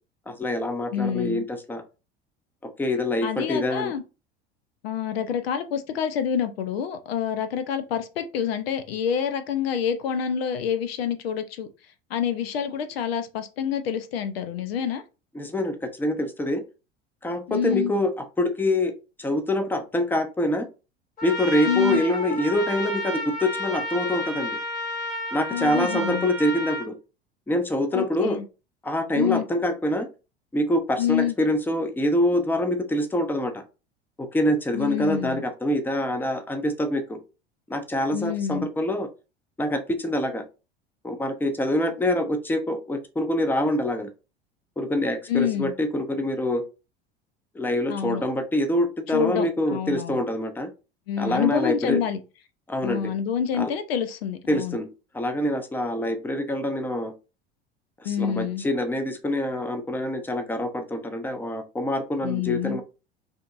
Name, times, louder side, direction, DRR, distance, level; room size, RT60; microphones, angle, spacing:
voice 1, 0.3-1.8 2.6-3.9 15.3-16.6 17.2-18.1 18.4-18.9 19.2-20.7 21.2-24.6 25.3-26.9 27.5-28.4 28.8-30.1 30.5-33.6 34.2-37.2 37.7-39.1 39.6-40.4 41.0-44.1 44.8-46.6 47.5-50.7 51.2-52.0 52.7-53.1 53.6-53.7 54.5-54.9 55.1-57.1 58.0-62.8, left 1 dB, 5° left, 0.7 m, -25 dB
voice 2, 0.9-1.4 3.2-4.0 4.8-11.7 12.1-15.0 17.5-17.9 21.7-22.0 25.5-26.3 27.9-28.4 29.2-29.5 31.0-31.4 34.7-35.4 38.1-38.7 45.3-45.7 47.9-48.2 49.1-50.2 51.1-52.2 52.8-54.8 58.0-58.6 62.2-62.8, left 8 dB, 70° left, 0.6 m, -27 dB
Trumpet, 21.2-26.9, left 1 dB, 25° left, 2.1 m, -31 dB
5.0 x 2.8 x 2.5 m
figure-of-eight pair, 75°, 31 cm